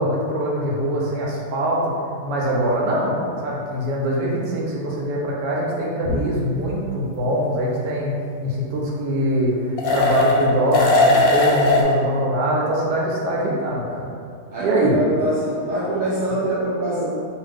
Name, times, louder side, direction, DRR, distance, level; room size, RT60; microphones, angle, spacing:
voice 1, 0.0-1.8 2.2-3.1 3.4-8.1 8.4-14.1 14.6-15.0, right 1 dB, 90° right, -4 dB, 1.2 m, -23 dB
sound 1, 6.0-6.1 9.8-10.5 10.7-11.8, left 2 dB, 70° left, 1.0 m, -18 dB
voice 2, 14.5-17.1, right 1 dB, 70° right, -9 dB, 1.0 m, -24 dB
2.6 x 2.4 x 3.3 m, 2.2 s
omnidirectional pair, 1.7 m